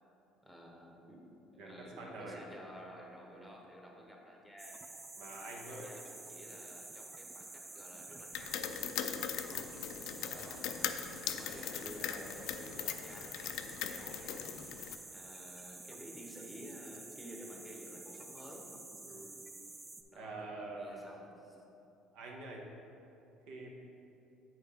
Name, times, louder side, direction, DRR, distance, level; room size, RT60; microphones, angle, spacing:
voice 1, 0.4-1.2 1.5-4.8 5.4-8.8 9.4-9.7 10.3-14.5 15.1-18.7 20.1-21.6, equal, ahead, -1 dB, 0.9 m, -52 dB
voice 2, 1.6-2.4 3.3-3.5 5.2-5.9 9.1-9.5 10.1-10.5 19.0-19.4 20.1-21.1 22.1-22.7 23.5-23.7, right 2 dB, 75° right, -1 dB, 1.1 m, -47 dB
sound 1, 4.6-20.0, right 3 dB, 15° right, 0.4 m, -50 dB
sound 2, 8.3-15.0, left 9 dB, 70° left, 0.3 m, -40 dB
9.0 x 4.4 x 3.6 m, 2.9 s
cardioid pair, 150°, 0 cm